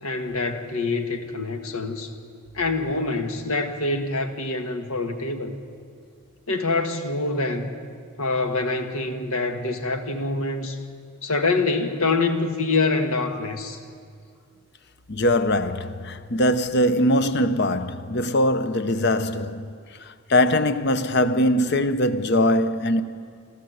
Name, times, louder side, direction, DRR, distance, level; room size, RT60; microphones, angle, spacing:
voice 1, 0.0-2.1 2.5-5.6 6.5-7.7 8.2-10.8 11.2-13.8, left 3 dB, 85° left, 1.6 m, -25 dB
voice 2, 15.1-19.7 20.0-23.0, left 1 dB, 50° left, 0.8 m, -22 dB
27.5 x 13.0 x 8.1 m
head